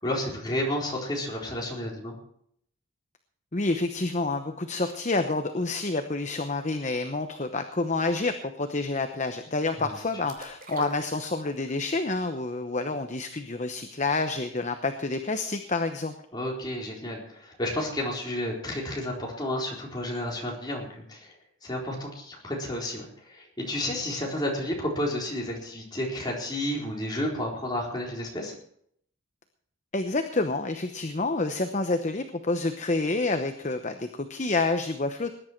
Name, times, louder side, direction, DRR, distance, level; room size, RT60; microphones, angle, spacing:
voice 1, 0.0-2.1 9.8-9.9 16.3-21.3 21.6-28.5, left 1 dB, 20° left, -2 dB, 4.2 m, -31 dB
voice 2, 3.5-16.1 29.9-35.3, left 3 dB, 35° left, 7 dB, 0.9 m, -28 dB
sound 1, 10.3-11.8 12.2-12.3, right 3 dB, 40° right, 2.9 m, -42 dB
20.0 x 10.5 x 4.5 m, 0.66 s
head